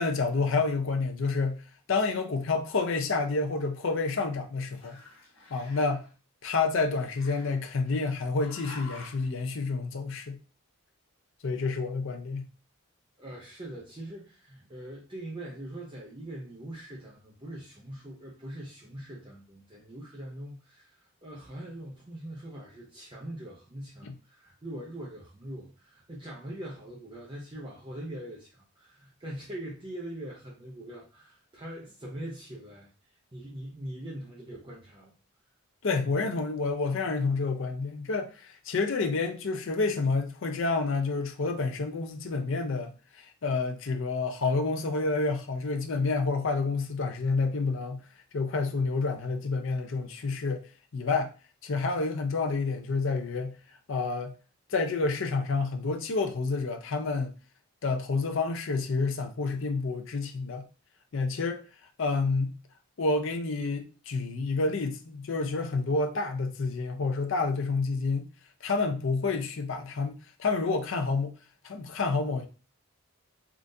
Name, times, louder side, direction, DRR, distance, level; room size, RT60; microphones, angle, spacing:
voice 1, 0.0-1.6 1.9-5.0 5.5-6.0 6.4-10.4 11.4-12.4 24.0-24.1 35.8-48.0 48.3-50.7 50.9-51.3 51.6-53.5 53.9-54.3 54.7-57.3 57.8-60.6 61.1-61.6 62.0-62.5 63.0-68.2 68.6-71.3 71.6-72.5, left 3 dB, 60° left, 0.5 m, -29 dB
Growling, 3.3-4.4 4.7-6.1 7.0-8.0 8.4-9.3, left 2 dB, 80° left, 1.2 m, -49 dB
voice 2, 13.2-32.9 33.3-35.1, right 1 dB, 20° right, 0.5 m, -42 dB
3.7 x 2.4 x 2.6 m
head